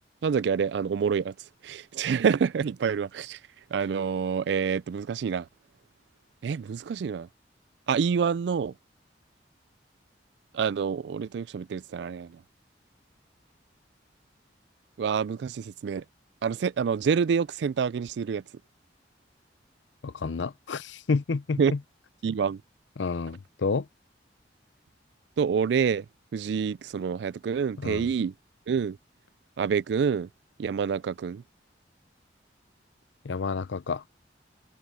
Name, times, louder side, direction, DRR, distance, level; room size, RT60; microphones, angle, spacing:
voice 1, 0.2-1.3 1.6-3.4 3.7-5.5 6.4-7.3 7.9-8.7 10.5-12.4 15.0-16.0 16.4-18.4 21.6-21.7 22.2-22.6 25.4-26.1 26.3-28.3 28.7-29.0 29.6-30.3 30.6-31.4, right 6 dB, 65° right, 0.3 m, -27 dB
voice 2, 20.0-21.8 23.0-23.9 27.8-28.1 33.2-34.0, left 4 dB, 80° left, 0.6 m, -30 dB
head